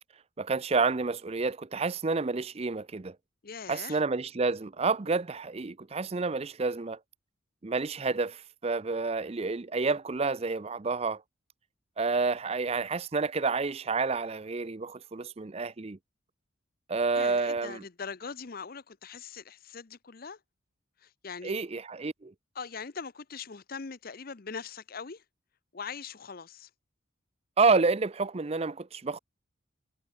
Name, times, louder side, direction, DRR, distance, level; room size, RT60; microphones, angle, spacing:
voice 1, 0.4-3.2 3.7-7.0 7.6-11.2 12.0-16.0 16.9-17.8 21.4-22.3 27.6-29.2, right 4 dB, 30° right, 0.5 m, -29 dB
voice 2, 3.4-4.0 17.1-20.4 21.0-21.5 22.5-25.2 25.7-26.7, left 5 dB, 45° left, 0.7 m, -41 dB
head